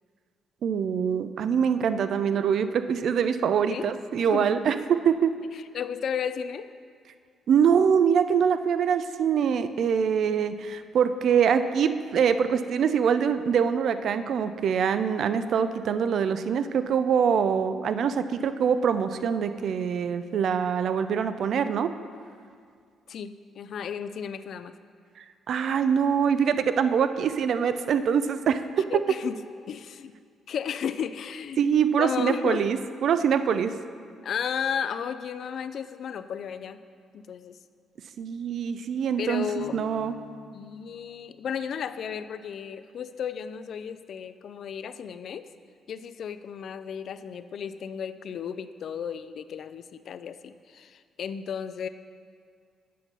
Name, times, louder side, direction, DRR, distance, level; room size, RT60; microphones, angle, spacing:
voice 1, 0.6-5.3 7.5-21.9 25.5-28.6 28.9-29.0 31.6-33.7 38.2-40.1, right 7 dB, 65° right, 11 dB, 0.4 m, -24 dB
voice 2, 4.2-4.6 5.7-6.7 18.0-18.3 23.1-24.7 28.9-29.4 29.7-30.1 30.5-32.7 34.2-36.8 37.1-37.6 39.2-39.8 40.5-45.5 45.9-51.9, left 7 dB, 65° left, 12 dB, 0.3 m, -34 dB
sound 1, 39.6-41.9, left 8 dB, 85° left, 1.2 m, -47 dB
8.4 x 5.3 x 5.5 m, 2.1 s
cardioid pair, 90°, 0 cm